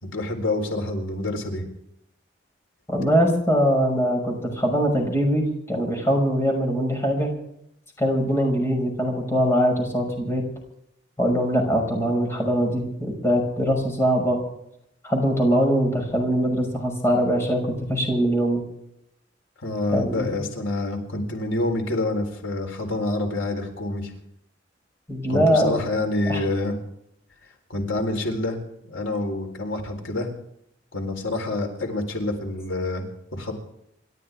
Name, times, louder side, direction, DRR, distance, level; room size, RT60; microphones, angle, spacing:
voice 1, 0.0-1.6 19.6-24.1 25.3-26.8 27.7-28.6 28.8-30.3 30.9-33.1 33.3-33.5, left 2 dB, 85° left, 3 dB, 4.0 m, -27 dB
voice 2, 2.9-7.3 8.0-10.4 11.2-14.4 15.0-18.6 19.9-20.4 25.1-25.7 26.3-26.4, equal, 15° left, 1 dB, 5.9 m, -22 dB
29.0 x 13.0 x 3.6 m, 0.75 s
head